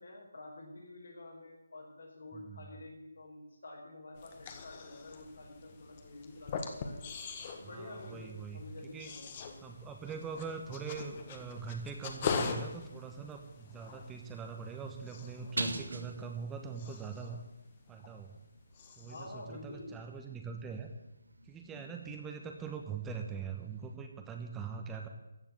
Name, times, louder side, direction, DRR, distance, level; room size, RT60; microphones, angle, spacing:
voice 1, 0.0-7.1 7.6-9.5 19.0-19.9 21.6-22.0, left 2 dB, 70° left, 1 dB, 5.0 m, -49 dB
voice 2, 2.3-2.7 7.5-8.6 8.9-9.1 9.6-17.4 17.9-18.4 18.9-20.9 21.4-25.1, right 5 dB, 10° right, 3 dB, 1.2 m, -42 dB
sound 1, 4.2-18.5 18.7-19.4, left 5 dB, 35° left, 1.6 m, -43 dB
sound 2, 5.4-24.0, right 2 dB, 85° right, 2.1 m, -48 dB
15.0 x 7.3 x 8.3 m, 0.94 s
figure-of-eight pair, 155°, 0 cm